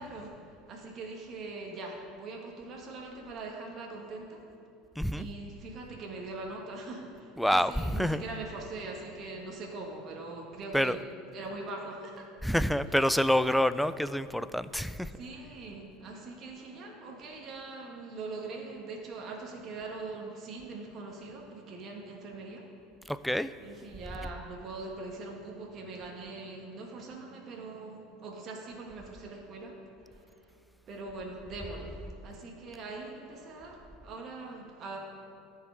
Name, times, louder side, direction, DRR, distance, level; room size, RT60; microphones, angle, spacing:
voice 1, 0.0-4.5 5.1-11.0 11.3-12.3 15.1-22.7 23.6-30.6 30.8-35.0, right 3 dB, 45° right, 0 dB, 1.4 m, -42 dB
voice 2, 5.0-5.3 7.4-8.2 10.7-11.0 12.4-15.1 23.1-23.5, equal, ahead, 14 dB, 0.3 m, -27 dB
13.5 x 4.8 x 3.8 m, 2.6 s
hypercardioid pair, 80°, 0 cm